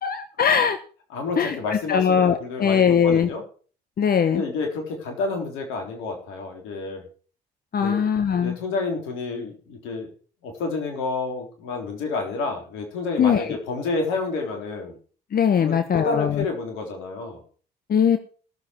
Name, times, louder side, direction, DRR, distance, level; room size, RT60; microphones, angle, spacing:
voice 1, 0.0-0.8 1.4-3.3 4.0-4.4 7.7-8.6 13.2-13.5 15.3-16.4 17.9-18.2, left 7 dB, 45° left, 9 dB, 1.2 m, -20 dB
voice 2, 1.1-3.4 4.3-7.0 7.8-8.1 8.4-10.1 10.4-15.0 15.6-17.4, left 3 dB, 80° left, 4 dB, 3.7 m, -29 dB
17.5 x 7.5 x 4.6 m, 0.40 s
hypercardioid pair, 60°, 20 cm